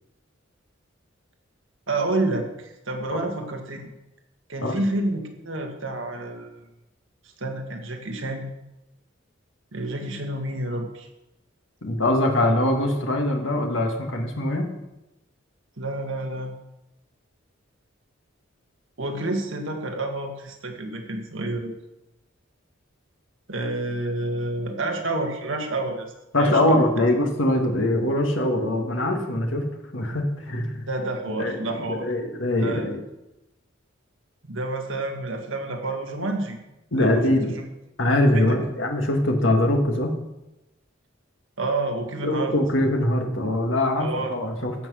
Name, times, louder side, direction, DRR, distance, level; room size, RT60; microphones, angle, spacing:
voice 1, 1.9-3.9 4.5-6.6 7.4-8.5 9.7-11.1 15.8-16.5 19.0-21.7 23.5-26.1 26.4-26.8 30.9-32.1 32.6-32.9 34.5-36.6 37.0-37.6 38.3-38.6 41.6-42.5 44.0-44.3, right 2 dB, 70° right, 3 dB, 1.7 m, -29 dB
voice 2, 11.8-14.7 26.3-29.7 29.9-30.9 31.4-33.0 36.9-37.5 38.0-40.2 42.2-44.7, left 1 dB, 65° left, 2 dB, 1.8 m, -23 dB
15.5 x 6.1 x 6.3 m, 0.95 s
head